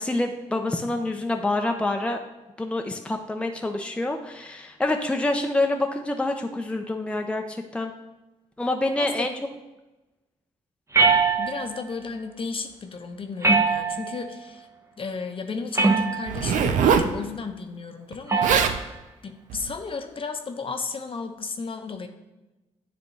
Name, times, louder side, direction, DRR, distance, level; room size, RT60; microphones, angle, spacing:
voice 1, 0.0-2.2 2.6-7.9 8.6-9.3, left 2 dB, 10° left, 4 dB, 0.6 m, -27 dB
voice 2, 9.0-9.3 11.4-14.7 15.0-19.0 19.2-22.1, left 4 dB, 45° left, 5 dB, 0.8 m, -34 dB
sound 1, 10.9-11.8 13.4-14.3 15.7-16.4 18.3-18.7, right 4 dB, 20° right, 0.9 m, -21 dB
Zipper (clothing), 16.3-17.1 18.1-18.2 18.4-18.8 19.5-19.7, right 7 dB, 75° right, 0.5 m, -22 dB
9.5 x 3.4 x 3.2 m, 1.1 s
supercardioid pair, 60°, 13 cm